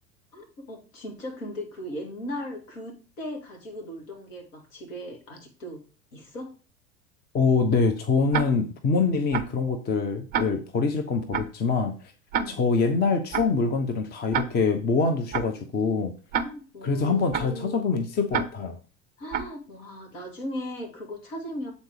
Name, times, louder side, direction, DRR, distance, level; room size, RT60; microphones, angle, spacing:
voice 1, 0.3-5.8 6.1-6.5 12.3-12.6 16.4-17.9 19.2-21.7, left 1 dB, 60° left, 2 dB, 2.3 m, -37 dB
voice 2, 7.3-11.9 12.5-16.1 16.8-18.8, left 4 dB, 20° left, 6 dB, 0.8 m, -24 dB
Tick-tock, 8.3-8.4 9.3-9.5 10.3-10.4 11.3-11.5 12.3-12.4 13.3-13.5 14.3-14.4 15.3-15.5 16.3-16.4 17.3-17.5 18.3-18.4 19.3-19.5, right 7 dB, 25° right, 0.5 m, -26 dB
7.9 x 4.1 x 4.9 m, 0.35 s
figure-of-eight pair, 75°, 43 cm